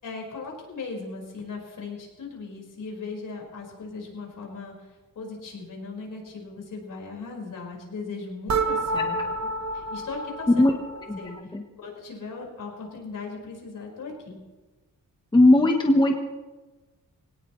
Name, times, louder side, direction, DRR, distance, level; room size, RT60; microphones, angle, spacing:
voice 1, 0.0-9.2 9.7-10.7 11.2-11.3 11.8-14.4, left 4 dB, 65° left, -1 dB, 5.0 m, -38 dB
sound 1, 8.5-11.4, right 2 dB, 55° right, 1.2 m, -29 dB
voice 2, 15.3-16.1, left 1 dB, 15° left, 3 dB, 1.1 m, -17 dB
23.5 x 18.0 x 3.2 m, 1.2 s
wide cardioid pair, 170°, 34 cm